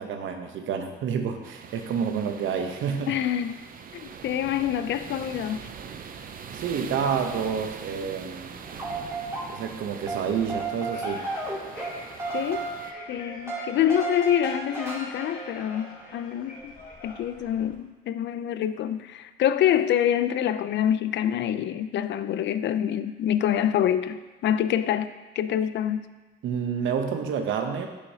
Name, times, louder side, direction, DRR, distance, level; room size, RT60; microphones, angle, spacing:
voice 1, 0.0-3.2 6.5-8.5 9.5-11.2 26.4-27.9, right 7 dB, 80° right, 5 dB, 0.8 m, -29 dB
sound 1, 1.4-12.9, right 6 dB, 45° right, 0.5 m, -42 dB
voice 2, 3.1-3.6 3.9-5.7 12.3-12.7 13.1-16.7 17.0-26.1, left 10 dB, 65° left, 13 dB, 0.4 m, -26 dB
sound 2, 8.3-17.7, left 1 dB, 45° left, 1.4 m, -46 dB
sound 3, 8.6-9.8 10.1-16.2, right 3 dB, 15° right, 2.1 m, -34 dB
7.9 x 6.4 x 2.7 m, 1.2 s
cardioid pair, 90°, 20 cm